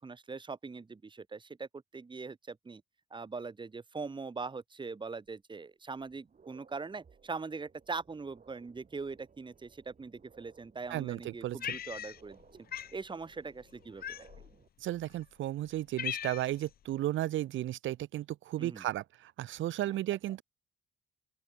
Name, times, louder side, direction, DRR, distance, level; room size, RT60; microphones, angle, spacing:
voice 1, 0.0-1.7 1.9-2.8 3.1-12.4 12.9-14.0 18.6-18.8 19.8-20.0, right 4 dB, 25° right, 1.4 m, -41 dB
sound 1, 5.3-5.4 5.9-14.7, right 6 dB, 40° right, 6.4 m, -62 dB
voice 2, 10.9-11.8 14.8-20.4, right 14 dB, 75° right, 1.0 m, -34 dB
Cat, 11.6-12.4 12.7-13.0 14.0-14.5 15.2-15.3 15.7-16.7, left 10 dB, 50° left, 0.6 m, -39 dB
open air
cardioid pair, 90°, 20 cm